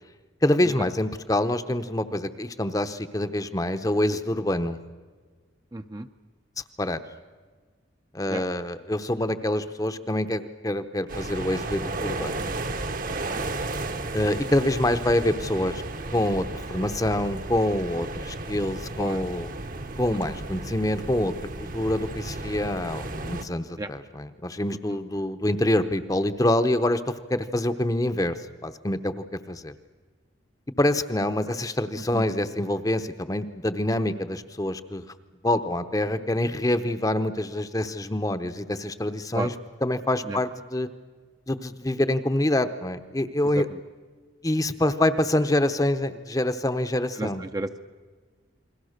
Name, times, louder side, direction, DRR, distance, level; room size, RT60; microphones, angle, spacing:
voice 1, 0.4-4.8 6.8-7.0 8.1-12.4 14.1-15.8 16.1-19.5 20.0-27.0 27.3-28.4 28.6-29.7 30.8-35.0 35.4-39.5 39.8-40.9 41.5-43.7 44.4-47.4, left 1 dB, 20° left, 10 dB, 0.8 m, -26 dB
voice 2, 5.7-6.1 8.3-8.4 12.4-12.6 13.1-13.4 19.0-19.2 20.3-20.4 23.8-23.9 24.9-25.0 32.1-32.2 39.3-39.5 40.3-40.4 43.5-43.8 47.2-47.8, right 2 dB, 20° right, 7 dB, 0.6 m, -33 dB
sound 1, 11.1-23.4, right 2 dB, 45° right, 1.1 m, -34 dB
29.0 x 21.5 x 6.6 m, 1.5 s
head